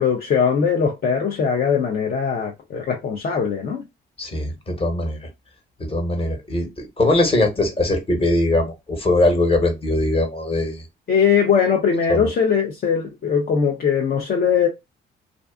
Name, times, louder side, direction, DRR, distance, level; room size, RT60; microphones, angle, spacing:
voice 1, 0.0-3.8 11.1-14.7, left 7 dB, 50° left, 0.5 m, -20 dB
voice 2, 4.2-5.2 5.8-10.8 12.1-12.3, left 2 dB, 30° left, 1.0 m, -21 dB
2.4 x 2.4 x 2.3 m
cardioid pair, 90°, 20 cm